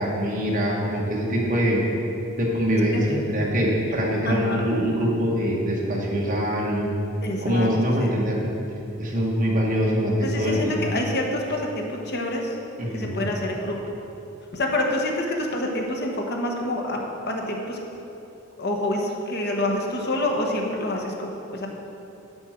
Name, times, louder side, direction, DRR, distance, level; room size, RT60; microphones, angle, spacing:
voice 1, 0.0-1.8 2.4-6.9 7.4-8.4 9.0-10.8 12.8-13.3, equal, 40° right, -3 dB, 1.8 m, -23 dB
voice 2, 2.9-3.2 4.2-4.6 7.2-7.7 8.0-8.1 10.2-12.5 12.9-14.0 14.5-17.0 17.3-17.8 18.6-21.7, left 1 dB, 50° left, 1 dB, 1.2 m, -27 dB
10.0 x 8.9 x 4.6 m, 2.9 s
head